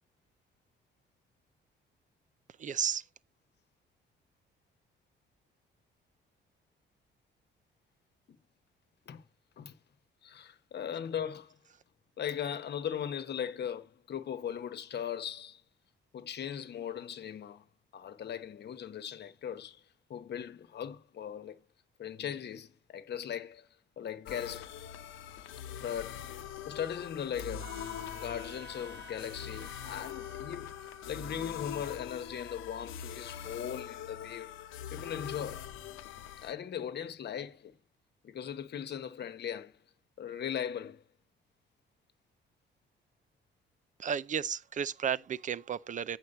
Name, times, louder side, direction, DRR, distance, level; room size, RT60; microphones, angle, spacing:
voice 1, 2.6-3.0 44.0-46.2, right 8 dB, 40° right, 0.5 m, -33 dB
voice 2, 10.2-11.6 12.2-15.6 16.1-17.6 17.9-19.8 20.1-21.6 22.0-23.7 24.0-24.7 25.8-26.3 26.7-27.7 28.1-30.7 31.1-34.5 34.9-35.7 36.4-37.8 38.2-39.7 40.2-41.0, left 9 dB, 60° left, 1.1 m, -38 dB
sound 1, 24.3-36.5, left 9 dB, 85° left, 0.8 m, -43 dB
Trumpet, 27.6-32.8, right 4 dB, 60° right, 1.1 m, -54 dB
8.6 x 4.6 x 6.7 m
cardioid pair, 90°, 20 cm